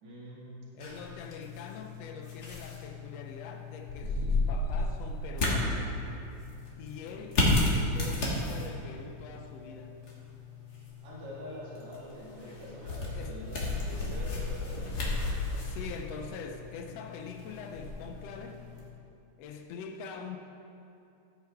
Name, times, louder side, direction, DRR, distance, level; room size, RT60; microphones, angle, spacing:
voice 1, 0.0-0.7 11.0-15.1, equal, 65° right, -6 dB, 3.1 m, -45 dB
voice 2, 0.7-5.9 6.8-7.5 7.9-10.0 13.1-13.4 15.6-18.7 19.4-20.4, left 5 dB, 80° left, 5 dB, 1.4 m, -43 dB
sound 1, 0.8-18.9, left 2 dB, 40° left, 1.6 m, -33 dB
14.5 x 8.1 x 3.5 m, 2.7 s
omnidirectional pair, 3.7 m